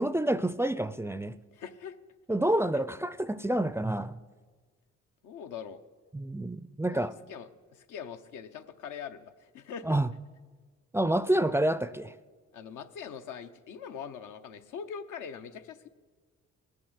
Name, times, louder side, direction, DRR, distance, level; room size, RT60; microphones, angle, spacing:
voice 1, 0.0-1.4 2.3-4.1 6.1-7.1 9.9-10.1 10.9-12.1, right 1 dB, 10° right, 0.4 m, -28 dB
voice 2, 1.5-2.0 2.7-2.8 5.2-5.8 6.9-10.0 12.5-15.9, left 7 dB, 85° left, 0.9 m, -42 dB
19.0 x 7.4 x 8.0 m
cardioid pair, 90°, 30 cm